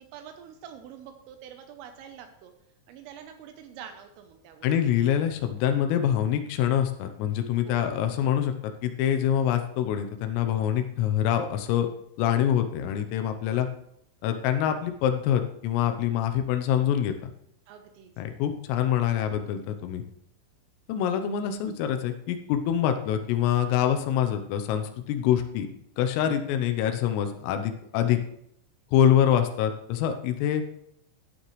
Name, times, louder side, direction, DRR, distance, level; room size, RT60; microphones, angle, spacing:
voice 1, 0.0-2.5 2.9-4.8 7.7-8.1 17.7-18.1, right 8 dB, 85° right, 6 dB, 3.5 m, -46 dB
voice 2, 4.6-8.5 8.8-11.9 12.2-13.7 14.2-17.3 18.2-20.0 20.9-25.7 26.0-28.2 28.9-30.6, left 10 dB, 85° left, 6 dB, 3.5 m, -25 dB
15.0 x 9.2 x 3.2 m, 0.74 s
omnidirectional pair, 5.8 m